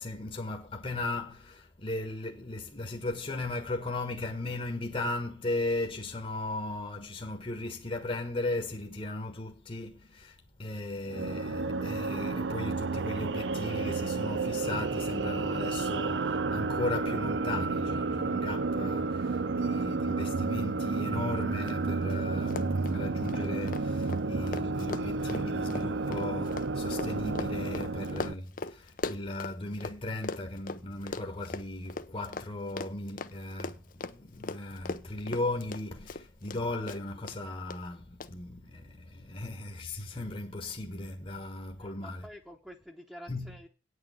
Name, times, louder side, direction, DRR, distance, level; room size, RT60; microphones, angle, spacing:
voice 1, 0.0-42.3 43.3-43.6, left 2 dB, 30° left, 1.3 m, -37 dB
sound 1, 11.0-28.3, right 3 dB, 80° right, 0.6 m, -31 dB
Run, 21.7-21.8 22.0-22.2 22.4-30.0 30.2-36.6 36.9-37.4 37.7-37.8 38.2-38.3, left 3 dB, 50° left, 0.7 m, -39 dB
voice 2, 41.7-43.7, equal, 5° right, 1.1 m, -49 dB
9.2 x 6.6 x 8.3 m
head